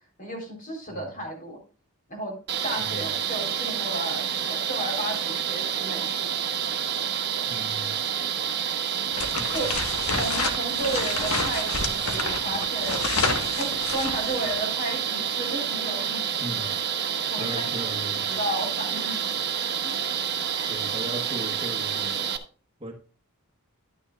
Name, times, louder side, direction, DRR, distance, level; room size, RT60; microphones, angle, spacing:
voice 1, 0.2-1.6 2.1-2.4 2.6-6.3 9.5-9.7 10.1-13.0 13.5-16.6 17.2-17.8 18.3-19.2 19.7-20.0, right 1 dB, 40° left, 2 dB, 4.0 m, -33 dB
voice 2, 0.9-1.2 2.8-3.1 7.5-8.0 9.3-9.7 16.4-16.7 17.4-18.4 20.5-22.3 22.8-22.9, equal, 25° right, 3 dB, 1.3 m, -38 dB
sound 1, 2.5-22.4, right 8 dB, 50° right, 1.1 m, -28 dB
sound 2, 9.1-14.6, left 4 dB, 85° left, 1.5 m, -30 dB
11.5 x 9.7 x 2.4 m, 0.37 s
head